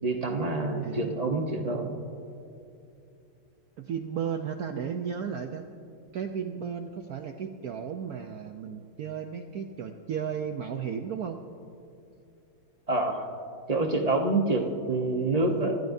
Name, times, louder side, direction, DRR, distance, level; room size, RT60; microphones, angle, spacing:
voice 1, 0.0-1.9 12.9-13.3 13.7-15.8, right 2 dB, 40° right, 1 dB, 0.5 m, -27 dB
voice 2, 3.8-5.6 6.1-11.4, right 7 dB, 80° right, 4 dB, 0.8 m, -34 dB
26.5 x 13.0 x 2.7 m, 2.7 s
omnidirectional pair, 2.3 m